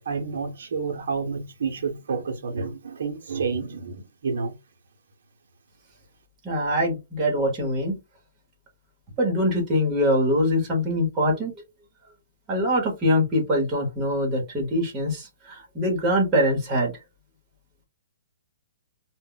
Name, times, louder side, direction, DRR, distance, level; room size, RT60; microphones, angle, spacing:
voice 1, 0.1-4.5, right 5 dB, 65° right, 0.7 m, -29 dB
voice 2, 6.4-8.0 9.2-11.6 12.5-17.0, equal, 15° right, 0.9 m, -23 dB
2.1 x 2.0 x 3.7 m
hypercardioid pair, 175°, 0 cm